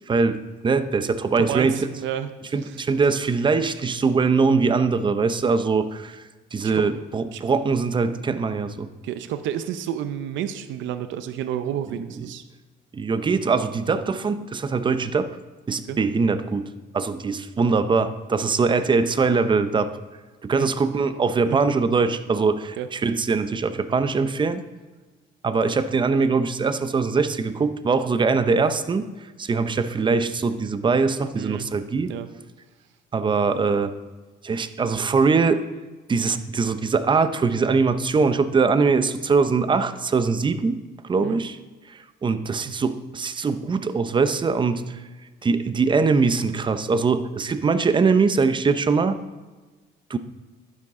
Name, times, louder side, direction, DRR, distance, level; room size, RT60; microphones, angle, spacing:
voice 1, 0.1-1.9 2.5-6.2 6.5-8.9 12.9-15.3 15.7-20.0 20.4-24.6 25.4-29.1 29.4-32.1 33.1-34.0 34.4-35.6 36.1-41.6 41.9-45.0 45.4-49.2 50.1-50.2, right 4 dB, 25° right, 12 dB, 0.6 m, -22 dB
voice 2, 1.4-2.3 2.6-2.8 6.6-6.8 7.3-7.4 9.0-12.4 15.9-16.0 20.5-20.7 21.4-21.6 22.8-22.9 31.4-31.7 32.1-32.3 41.2-41.4, right 10 dB, 70° right, 10 dB, 0.7 m, -30 dB
11.5 x 9.6 x 3.7 m, 1.3 s
cardioid pair, 120°, 20 cm